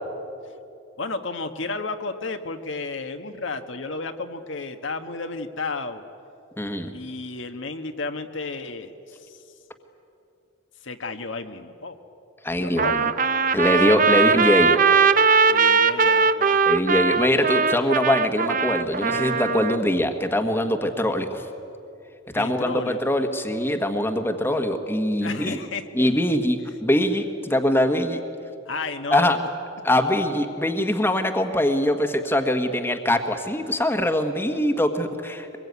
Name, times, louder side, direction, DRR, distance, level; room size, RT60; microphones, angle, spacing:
voice 1, 1.0-6.0 6.9-9.4 10.8-12.0 12.6-13.0 13.9-14.3 15.5-16.6 22.3-23.0 25.2-26.4 28.7-29.4, left 3 dB, 65° left, 6 dB, 1.4 m, -33 dB
voice 2, 6.6-6.9 12.4-13.0 13.5-14.8 16.6-21.5 22.3-25.6 25.9-28.2 29.1-29.4 29.8-35.6, left 1 dB, 10° left, 6 dB, 1.5 m, -22 dB
Trumpet, 12.8-19.8, right 5 dB, 40° right, 0.8 m, -20 dB
24.5 x 21.5 x 9.5 m, 2.7 s
head